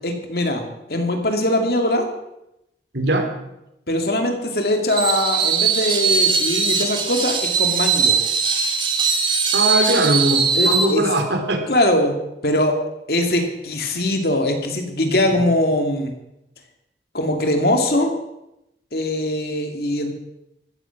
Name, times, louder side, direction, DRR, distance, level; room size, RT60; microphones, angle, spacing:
voice 1, 0.0-0.6 0.9-2.1 3.9-8.2 10.5-11.0 11.7-12.1 12.4-12.8 13.1-16.1 17.1-18.1 18.9-20.1, left 1 dB, 60° left, 4 dB, 2.6 m, -21 dB
voice 2, 2.9-3.3 9.5-11.6 15.3-15.4, right 1 dB, 80° right, 4 dB, 3.1 m, -20 dB
Screech, 4.9-10.9, right 5 dB, 30° right, 1.9 m, -20 dB
15.0 x 13.5 x 6.0 m, 0.86 s
head